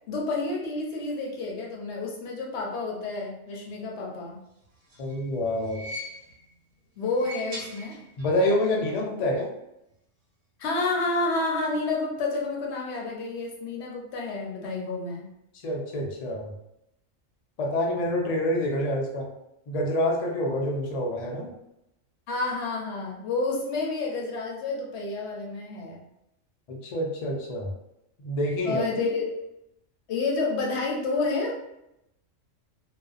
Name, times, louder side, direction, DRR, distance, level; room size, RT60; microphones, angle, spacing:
voice 1, 0.1-4.4 7.0-8.0 10.6-15.3 22.3-26.0 28.7-29.3 30.1-31.5, left 3 dB, 65° left, -1 dB, 0.8 m, -29 dB
sound 1, 4.6-6.5 7.0-8.4 8.7-8.8 9.9-10.0, left 1 dB, 70° right, 1.0 m, -41 dB
voice 2, 5.0-5.8 8.2-9.5 15.6-16.5 17.6-19.3 19.7-21.5 26.7-27.7 28.2-28.8, left 1 dB, 85° left, 0 dB, 0.3 m, -27 dB
2.5 x 2.1 x 2.4 m, 0.84 s
omnidirectional pair, 1.3 m